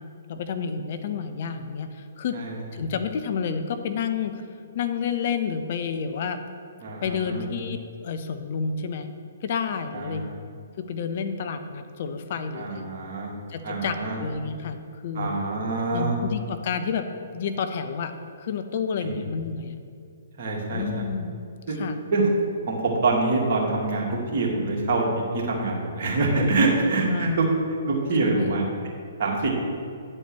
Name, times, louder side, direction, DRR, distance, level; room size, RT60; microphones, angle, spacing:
voice 1, 0.3-2.4 2.7-4.4 4.7-6.4 7.0-9.1 9.4-10.2 10.8-12.8 13.5-14.8 15.0-15.4 15.9-17.1 17.3-18.1 18.4-19.8 20.7-21.3 21.7-22.1 27.1-27.6 28.2-28.5 29.4-29.5, left 6 dB, 50° left, 8 dB, 0.6 m, -30 dB
voice 2, 6.8-7.4 9.9-10.3 12.5-13.3 13.6-14.1 15.2-16.2 19.0-19.1 20.4-21.0 21.7-21.8 22.1-22.2 22.7-25.0 25.3-27.5 27.9-28.7 29.2-29.5, right 3 dB, 45° right, -3 dB, 2.1 m, -25 dB
9.7 x 4.4 x 6.2 m, 2.3 s
figure-of-eight pair, 125°, 0 cm